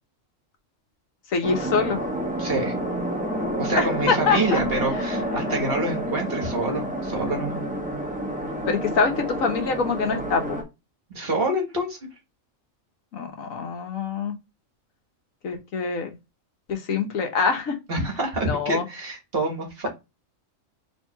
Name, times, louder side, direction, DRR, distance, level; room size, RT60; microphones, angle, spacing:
voice 1, 1.3-2.0 3.8-4.6 8.7-10.6 13.1-14.3 15.4-16.1 16.7-17.8 18.4-18.9, left 5 dB, 85° left, 1.4 m, -25 dB
sound 1, 1.4-10.6, right 1 dB, 5° right, 0.9 m, -29 dB
voice 2, 2.4-2.7 3.6-7.6 11.1-12.0 17.9-19.9, right 2 dB, 45° right, 1.6 m, -27 dB
4.5 x 3.6 x 2.2 m
omnidirectional pair, 1.4 m